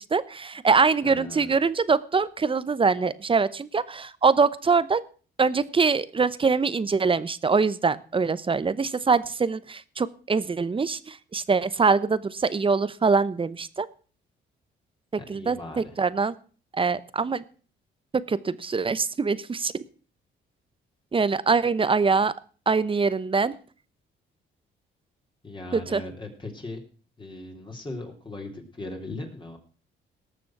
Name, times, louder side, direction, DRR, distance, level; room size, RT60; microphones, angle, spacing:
voice 1, 0.0-5.0 5.4-13.9 15.3-16.3 16.7-17.4 18.1-19.7 21.1-22.3 22.7-23.5 25.7-26.0, right 4 dB, 25° right, 17 dB, 0.8 m, -23 dB
voice 2, 1.0-1.5 15.2-16.0 25.4-26.8 27.2-29.6, left 2 dB, 25° left, 1 dB, 3.6 m, -38 dB
18.5 x 6.9 x 6.0 m, 0.40 s
cardioid pair, 90°, 20 cm